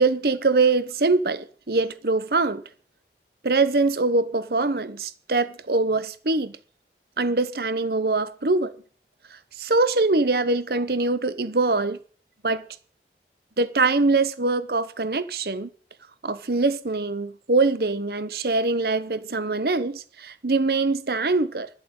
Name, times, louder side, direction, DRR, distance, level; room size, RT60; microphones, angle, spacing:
voice 1, 0.0-2.6 3.4-6.6 7.2-8.8 9.3-12.0 12.4-12.7 13.6-15.7 16.2-21.7, right 3 dB, 60° right, 0.9 m, -23 dB
11.5 x 7.7 x 8.7 m
head